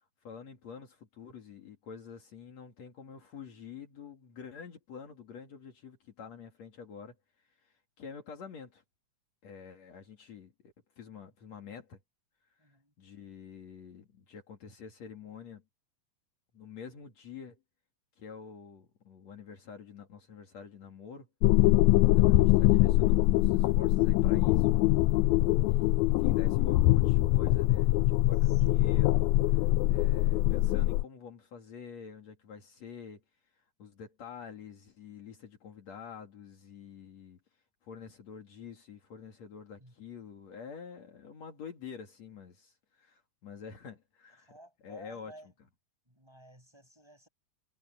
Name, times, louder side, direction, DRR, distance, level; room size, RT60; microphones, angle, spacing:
voice 1, 0.3-7.2 7.6-8.8 9.4-12.0 13.0-15.6 16.5-17.6 18.2-21.3 22.2-25.0 25.6-29.6 29.9-33.2 33.8-37.4 37.8-44.5 44.8-45.3, left 6 dB, 65° left, 3.5 m, -47 dB
voice 2, 12.6-12.9 22.0-22.5 28.4-28.9 39.8-39.9 44.4-45.5 46.1-47.3, right 1 dB, 10° right, 7.9 m, -56 dB
sound 1, 21.4-31.0, left 17 dB, 85° left, 2.0 m, -23 dB
omnidirectional pair, 3.3 m